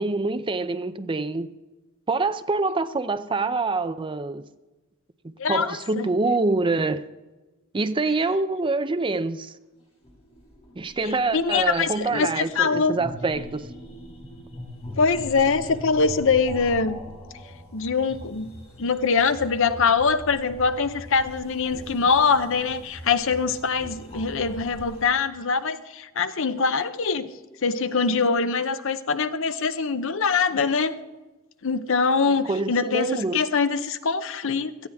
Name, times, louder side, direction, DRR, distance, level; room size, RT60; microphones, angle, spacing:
voice 1, 0.0-1.5 2.1-4.4 5.2-7.1 7.7-9.5 10.8-13.7 32.3-33.4, right 3 dB, 25° right, 0.5 m, -26 dB
voice 2, 5.4-6.1 11.3-12.9 15.0-17.0 17.7-18.5 18.8-27.3 27.6-31.0 31.6-34.9, left 5 dB, 65° left, 0.7 m, -23 dB
sound 1, 9.7-25.1, equal, 30° left, 4.5 m, -41 dB
17.0 x 14.0 x 3.5 m
head